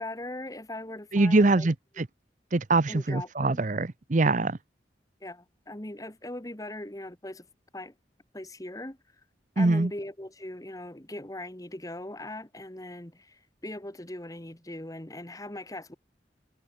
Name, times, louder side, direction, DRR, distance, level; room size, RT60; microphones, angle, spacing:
voice 1, 0.0-1.7 2.9-3.6 5.2-7.5 7.7-7.9 8.3-9.0 9.5-15.9, left 1 dB, 20° left, 1.6 m, -40 dB
voice 2, 1.1-2.1 2.5-4.6 9.6-9.9, right 2 dB, 45° right, 0.7 m, -23 dB
head